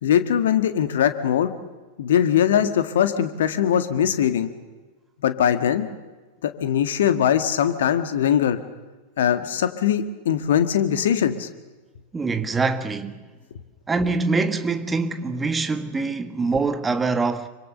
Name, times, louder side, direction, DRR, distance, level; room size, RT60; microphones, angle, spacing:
voice 1, 0.0-1.5 2.0-4.5 5.2-5.9 6.4-8.6 9.2-11.5, left 9 dB, 60° left, 1.8 m, -21 dB
voice 2, 12.1-13.2 13.9-17.5, right 4 dB, 15° right, 1.7 m, -24 dB
26.5 x 25.0 x 6.7 m
figure-of-eight pair, 90°, 0 cm